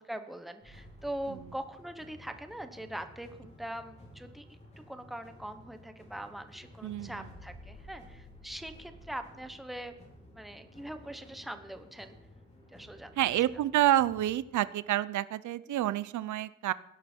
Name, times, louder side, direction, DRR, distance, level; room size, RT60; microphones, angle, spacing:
voice 1, 0.0-4.4 4.8-9.9 10.3-12.1 12.7-13.2, right 1 dB, ahead, 8 dB, 0.8 m, -42 dB
sound 1, 0.6-14.5, left 1 dB, 20° left, 3.1 m, -53 dB
voice 2, 6.8-7.3 13.2-16.7, right 13 dB, 80° right, 17 dB, 0.5 m, -28 dB
18.5 x 11.0 x 4.4 m, 0.86 s
wide cardioid pair, 170°, 29 cm